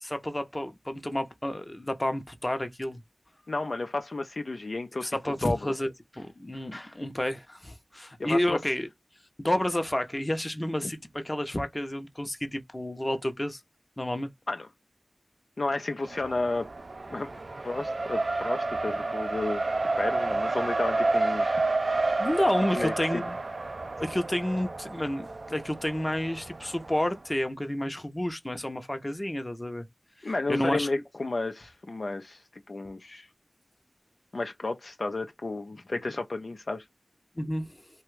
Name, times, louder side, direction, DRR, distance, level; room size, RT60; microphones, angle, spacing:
voice 1, 0.0-3.0 5.0-8.9 9.4-13.6 14.0-14.3 22.2-23.4 24.0-29.9 30.2-30.9 37.4-37.8, left 1 dB, 25° left, 0.7 m, -30 dB
voice 2, 3.5-5.1 5.4-5.6 8.2-8.6 10.8-10.9 14.5-14.7 15.6-16.7 17.1-17.3 17.6-19.6 20.0-21.6 22.8-23.2 30.2-32.4 32.7-33.3 34.3-36.8, left 2 dB, 75° left, 0.5 m, -32 dB
Race car auto racing, 16.1-27.1, right 2 dB, 75° right, 0.3 m, -30 dB
3.0 x 2.3 x 3.1 m
wide cardioid pair, 55°, 0 cm